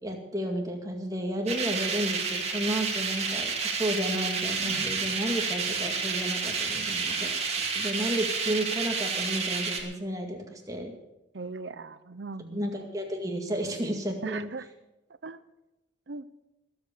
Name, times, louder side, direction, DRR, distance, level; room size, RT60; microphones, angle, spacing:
voice 1, 0.0-10.9 12.5-14.5, right 1 dB, 20° right, 2 dB, 2.1 m, -32 dB
sound 1, 1.5-9.8, right 5 dB, 35° right, 2.3 m, -30 dB
sound 2, 4.6-8.6 8.9-9.0, right 2 dB, 10° left, 7.5 m, -51 dB
voice 2, 11.3-12.6 14.2-14.6 15.2-15.4 16.1-16.3, right 4 dB, 70° right, 13 dB, 0.7 m, -38 dB
20.5 x 8.0 x 6.8 m, 0.97 s
head